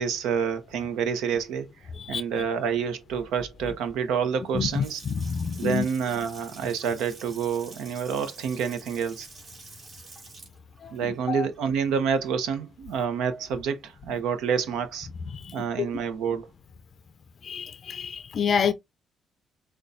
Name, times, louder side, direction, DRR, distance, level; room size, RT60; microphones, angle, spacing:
voice 1, 0.0-1.7 2.1-5.0 5.6-9.3 10.9-15.1 15.5-16.5, right 7 dB, 90° right, 0.7 m, -28 dB
voice 2, 4.5-5.9 10.8-11.5 15.3-15.9 17.4-18.7, left 7 dB, 50° left, 0.4 m, -29 dB
Water tap faucet / Sink (filling or washing) / Splash splatter, 4.5-12.5, right 3 dB, 50° right, 2.7 m, -48 dB
6.3 x 2.3 x 2.6 m
cardioid pair, 90°, 0 cm